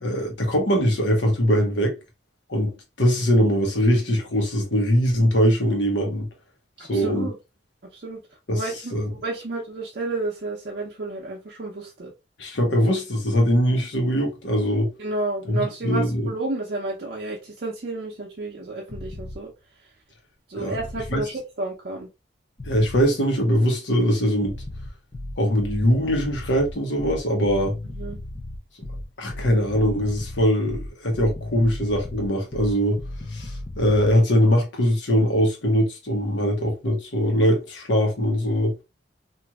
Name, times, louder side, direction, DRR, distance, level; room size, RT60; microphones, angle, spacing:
voice 1, 0.0-2.0 2.5-6.3 6.9-7.3 8.5-8.6 8.9-9.1 12.4-14.9 15.5-16.3 20.5-20.7 21.1-21.2 22.6-24.5 25.4-27.7 29.2-33.0 33.3-38.7, equal, 80° left, 1.0 m, -21 dB
voice 2, 6.8-7.3 7.8-8.2 8.5-12.1 12.6-12.8 15.0-19.5 20.5-22.1 27.8-28.2, right 2 dB, 60° right, 0.6 m, -31 dB
sound 1, 18.9-19.4 20.7-21.3 22.6-23.1 24.4-34.2, left 1 dB, 35° left, 0.6 m, -35 dB
3.0 x 2.5 x 2.3 m
head